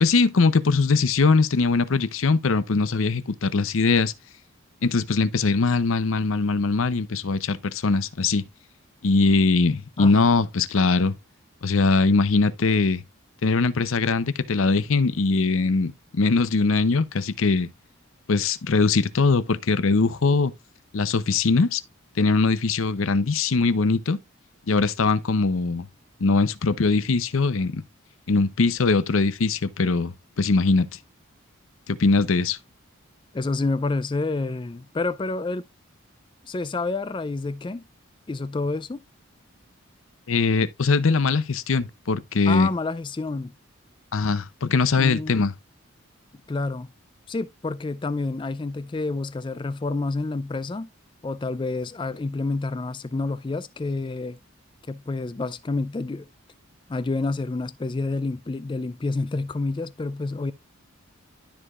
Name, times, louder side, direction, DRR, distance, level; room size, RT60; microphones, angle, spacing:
voice 1, 0.0-4.1 4.8-8.4 9.0-11.2 11.6-13.0 13.4-17.7 18.3-20.5 20.9-21.8 22.2-24.2 24.7-25.9 26.2-27.8 28.3-30.9 31.9-32.6 40.3-42.7 44.1-45.5, left 4 dB, 70° left, 0.6 m, -21 dB
voice 2, 33.3-35.6 36.4-37.9 38.3-39.0 42.5-43.5 44.6-45.5 46.5-46.9 47.3-50.9 51.2-54.4 54.9-56.3 56.9-60.5, left 3 dB, 20° left, 0.3 m, -28 dB
12.5 x 4.7 x 2.4 m
head